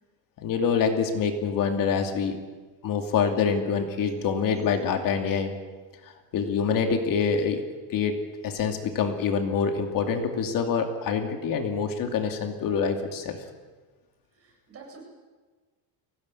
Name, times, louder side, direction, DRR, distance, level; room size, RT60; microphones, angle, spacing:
voice 1, 0.4-2.4 2.8-5.5 6.3-7.6 7.9-8.2 8.4-13.4, left 6 dB, 55° left, 5 dB, 2.7 m, -26 dB
voice 2, 14.3-15.0, right 4 dB, 35° right, 0 dB, 8.0 m, -47 dB
23.5 x 17.5 x 9.9 m, 1.4 s
cardioid pair, 160°, 39 cm